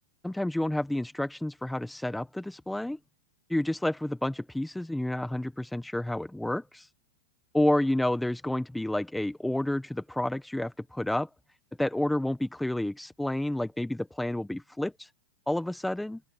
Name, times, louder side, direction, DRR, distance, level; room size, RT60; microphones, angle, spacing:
voice 1, 0.2-3.0 3.5-6.9 7.5-11.3 11.8-15.1 15.5-16.2, left 1 dB, ahead, 0.7 m, -30 dB
open air
supercardioid pair, 170°, 0 cm